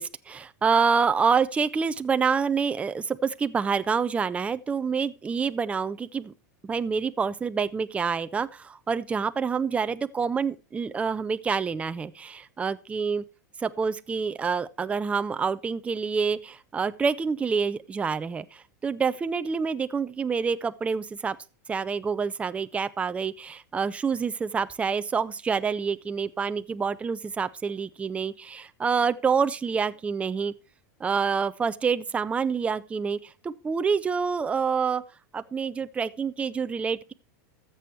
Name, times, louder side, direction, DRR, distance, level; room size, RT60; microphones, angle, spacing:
voice 1, 0.0-6.3 6.6-13.2 13.6-21.4 21.7-30.5 31.0-35.0 35.3-37.1, right 5 dB, 15° right, 0.4 m, -27 dB
13.5 x 6.9 x 4.5 m
supercardioid pair, 130°, 9 cm